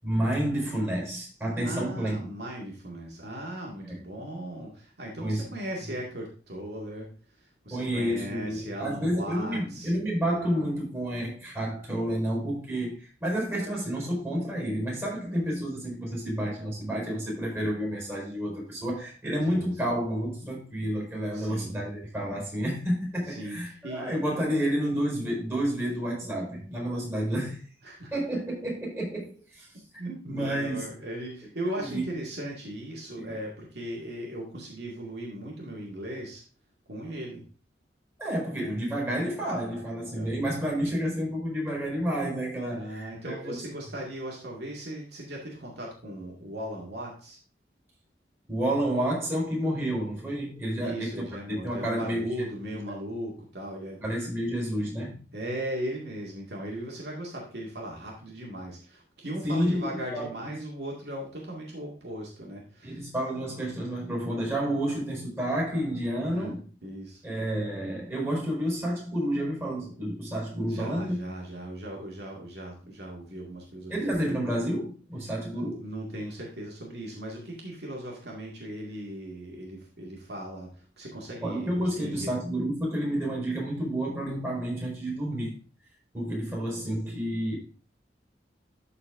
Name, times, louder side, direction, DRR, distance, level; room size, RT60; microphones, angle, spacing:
voice 1, 0.0-2.3 3.8-3.9 5.2-5.5 7.7-27.6 28.1-29.7 30.3-30.9 31.7-32.1 33.2-33.4 38.2-43.6 48.5-52.8 54.0-55.2 59.4-60.5 62.8-66.7 67.2-71.2 73.9-75.9 81.4-85.6 86.1-87.6, equal, 15° right, -3 dB, 4.2 m, -30 dB
voice 2, 1.6-7.1 7.4-9.9 19.5-19.7 21.3-21.8 23.3-24.2 27.8-28.1 30.0-36.4 36.9-37.4 40.1-40.4 42.7-47.4 50.8-54.0 55.3-63.0 66.3-67.2 70.7-74.4 75.8-82.3, right 1 dB, 65° right, -2 dB, 2.1 m, -38 dB
13.0 x 4.3 x 3.6 m, 0.38 s
head